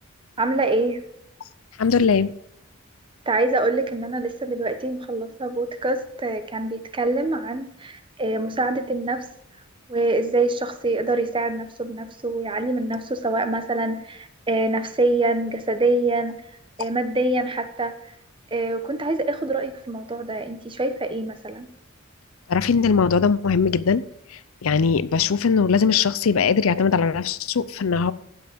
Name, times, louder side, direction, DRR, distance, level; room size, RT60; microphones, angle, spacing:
voice 1, 0.4-1.0 3.3-9.3 9.9-16.4 16.8-17.9 18.5-21.7, right 2 dB, 25° right, 9 dB, 0.8 m, -25 dB
voice 2, 1.8-2.3 22.5-24.0 24.3-28.1, left 5 dB, 80° left, 16 dB, 0.5 m, -20 dB
15.5 x 5.8 x 5.2 m, 0.74 s
head